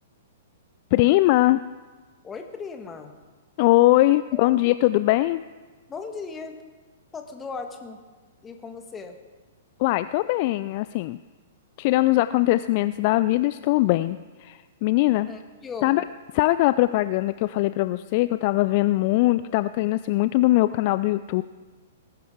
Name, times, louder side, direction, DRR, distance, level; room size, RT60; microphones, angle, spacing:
voice 1, 0.9-1.6 3.6-5.4 9.8-11.2 11.8-15.3 15.8-16.0 16.3-21.4, left 17 dB, 40° left, 14 dB, 0.3 m, -21 dB
voice 2, 2.2-3.1 4.3-4.6 5.9-6.6 7.1-8.0 8.4-9.2 15.3-16.0, left 4 dB, 15° left, 5 dB, 1.5 m, -37 dB
19.5 x 11.0 x 3.7 m, 1.4 s
figure-of-eight pair, 110°, 0 cm